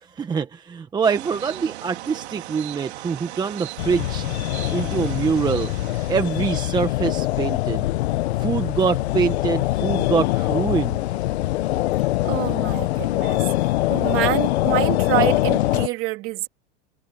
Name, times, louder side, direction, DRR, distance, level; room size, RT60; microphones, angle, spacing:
voice 1, 0.0-4.3 4.7-5.7 6.1-7.9 8.4-11.0, right 6 dB, 10° right, 1.0 m, -24 dB
sound 1, 1.0-6.7, right 16 dB, 65° right, 4.0 m, -38 dB
sound 2, 3.8-15.9, left 16 dB, 65° left, 0.9 m, -23 dB
voice 2, 12.2-13.4 13.9-16.5, right 19 dB, 35° right, 3.4 m, -26 dB
supercardioid pair, 150°, 35 cm